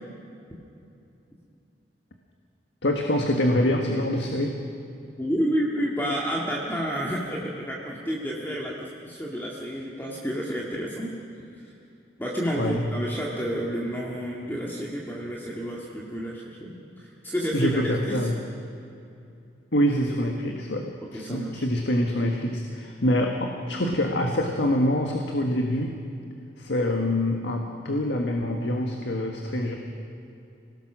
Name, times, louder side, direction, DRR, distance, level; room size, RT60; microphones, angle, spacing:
voice 1, 2.8-4.6 12.5-12.9 17.5-18.3 19.7-26.0 26.6-29.8, left 1 dB, 90° left, 2 dB, 1.7 m, -25 dB
voice 2, 5.2-11.1 12.2-17.7 18.1-18.2 21.1-21.6, equal, 10° left, -4 dB, 2.1 m, -30 dB
26.5 x 18.0 x 6.2 m, 2.6 s
head